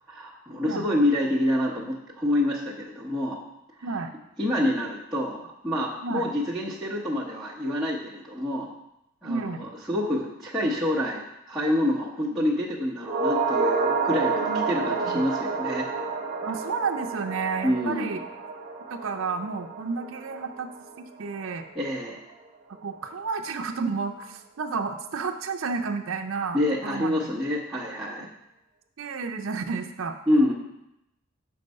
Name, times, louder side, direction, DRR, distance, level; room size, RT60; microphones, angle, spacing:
voice 1, 0.1-3.4 4.4-8.7 9.2-11.2 11.5-15.9 17.6-18.2 21.7-22.2 26.5-28.3 30.3-30.5, left 1 dB, ahead, -7 dB, 0.9 m, -27 dB
voice 2, 3.8-4.1 6.0-6.3 9.2-9.7 12.3-12.5 14.3-15.2 16.4-18.2 18.9-20.7 21.0-21.6 22.8-27.3 29.0-30.2, right 4 dB, 65° right, 5 dB, 0.5 m, -31 dB
sound 1, 13.0-21.5 21.8-21.9, right 4 dB, 40° right, 1.1 m, -29 dB
6.5 x 4.6 x 5.3 m, 0.86 s
head